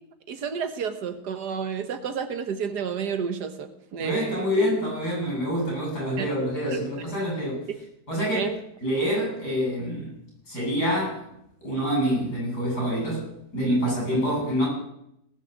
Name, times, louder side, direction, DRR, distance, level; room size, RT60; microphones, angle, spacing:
voice 1, 0.3-4.7 6.2-6.3 8.3-8.5 13.9-14.0, right 6 dB, 80° right, 9 dB, 1.8 m, -30 dB
voice 2, 4.0-7.6 8.1-8.5 8.8-10.1 10.5-11.2 11.6-13.3 13.5-14.7, equal, 75° left, -4 dB, 8.3 m, -26 dB
18.5 x 6.4 x 7.9 m, 0.79 s
omnidirectional pair, 1.7 m